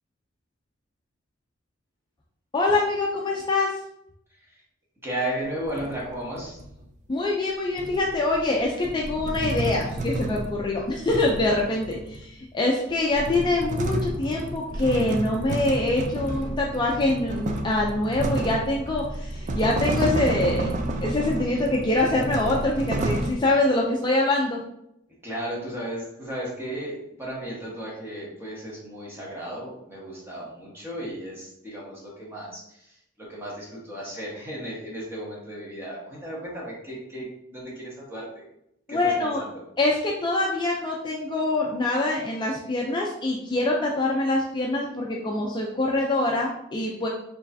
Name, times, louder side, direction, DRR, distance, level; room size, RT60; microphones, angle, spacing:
voice 1, 2.5-3.7 7.1-20.7 21.0-24.6 38.9-39.4 39.8-47.1, left 2 dB, 25° left, -2 dB, 0.4 m, -24 dB
voice 2, 5.0-6.6 25.2-38.5 38.9-39.5, right 1 dB, 10° right, -5 dB, 1.3 m, -35 dB
sound 1, 5.4-6.8 7.8-12.4 12.9-23.3, right 1 dB, 40° right, 0.4 m, -31 dB
4.7 x 3.1 x 2.6 m, 0.79 s
head